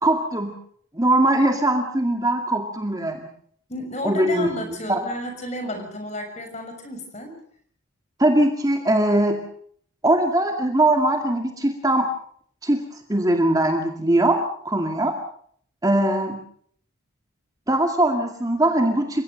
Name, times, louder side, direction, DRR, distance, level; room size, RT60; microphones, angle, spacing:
voice 1, 0.0-0.5 0.9-3.3 4.0-4.5 4.9-5.0 8.2-9.4 10.0-12.1 12.6-15.2 15.8-16.4 17.7-19.2, right 1 dB, 15° right, 3 dB, 2.2 m, -21 dB
voice 2, 3.7-7.3, left 1 dB, 35° left, 5 dB, 6.5 m, -32 dB
29.5 x 17.0 x 6.7 m, 0.62 s
head